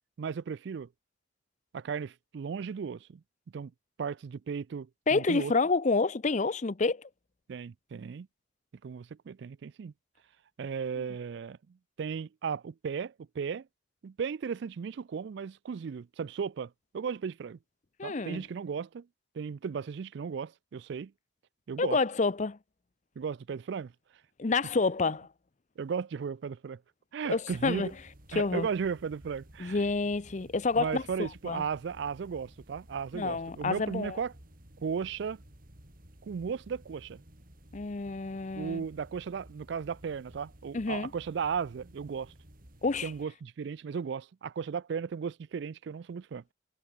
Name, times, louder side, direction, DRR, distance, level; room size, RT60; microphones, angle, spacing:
voice 1, 0.2-0.9 1.7-3.2 3.5-3.7 4.0-5.5 7.5-8.3 8.8-9.9 10.6-13.7 14.0-17.6 18.0-19.1 19.3-21.1 21.7-22.0 23.2-23.9 25.8-26.8 27.1-27.9 28.3-29.8 30.7-34.3 34.8-35.4 36.2-37.2 38.5-42.3 43.0-46.5, right 6 dB, 60° right, 0.4 m, -35 dB
voice 2, 5.1-7.1 18.0-18.4 21.8-22.6 24.4-25.3 27.3-27.9 28.3-28.7 29.6-31.6 33.1-34.2 37.7-38.8 40.7-41.1 42.8-43.1, left 3 dB, 40° left, 0.6 m, -29 dB
sound 1, 27.5-43.3, right 1 dB, 45° right, 4.0 m, -55 dB
head